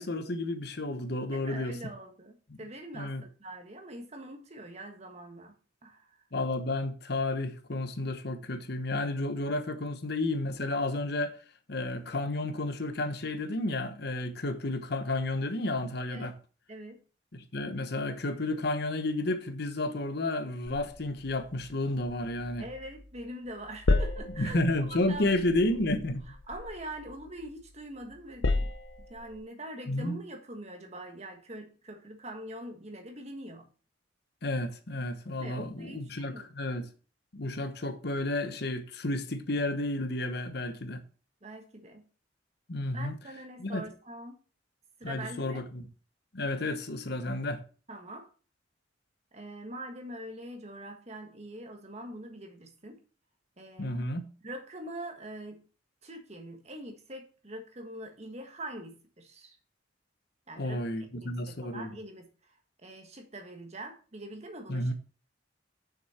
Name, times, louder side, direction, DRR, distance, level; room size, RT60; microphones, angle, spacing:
voice 1, 0.0-1.8 2.5-2.6 2.9-3.2 6.3-11.4 11.7-16.3 17.3-22.6 24.4-26.2 29.9-30.2 34.4-36.9 37.3-41.0 42.7-43.1 43.6-43.8 45.0-45.9 46.3-47.6 53.8-54.3 60.6-61.9 64.7-64.9, left 2 dB, 60° left, 1.1 m, -31 dB
voice 2, 1.3-5.6 5.8-6.2 16.0-16.3 16.7-17.0 22.6-25.7 26.3-28.7 29.0-33.7 35.4-36.5 41.4-42.1 42.9-44.4 45.0-45.6 47.9-48.3 49.3-53.0 53.6-54.0 54.4-55.6 56.0-59.6 60.5-60.8 61.1-62.3 62.8-64.9, right 1 dB, 35° right, 1.5 m, -43 dB
sound 1, 20.7-23.2 23.5-27.7 28.1-29.4, left 2 dB, 85° left, 0.9 m, -33 dB
6.5 x 6.4 x 4.3 m
head